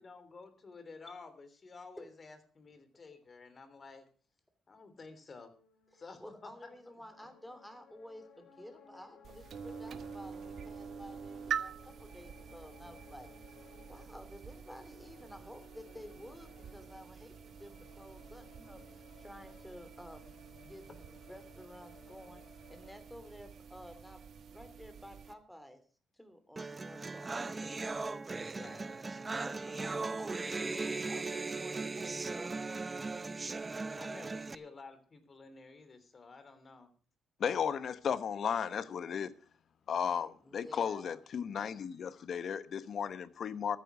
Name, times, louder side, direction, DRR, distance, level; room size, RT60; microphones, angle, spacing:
voice 1, 0.0-4.0 4.7-5.5 5.9-6.7 20.6-20.7 28.6-28.8 33.9-36.9, left 4 dB, 35° left, 3.2 m, -52 dB
sound 1, 5.5-23.0, left 4 dB, 75° left, 5.3 m, -60 dB
voice 2, 5.9-13.3 13.9-18.8 19.2-20.3 20.7-24.2 24.5-25.8 26.1-27.8 28.6-29.0 29.4-32.7 40.4-41.2, equal, 5° left, 3.1 m, -52 dB
sound 2, 9.2-25.3, right 7 dB, 60° right, 1.2 m, -46 dB
sound 3, 26.6-34.5, right 3 dB, 25° right, 0.7 m, -38 dB
voice 3, 37.4-39.3 39.9-43.8, left 7 dB, 55° left, 1.0 m, -35 dB
14.0 x 9.7 x 6.2 m
cardioid pair, 90°, 0 cm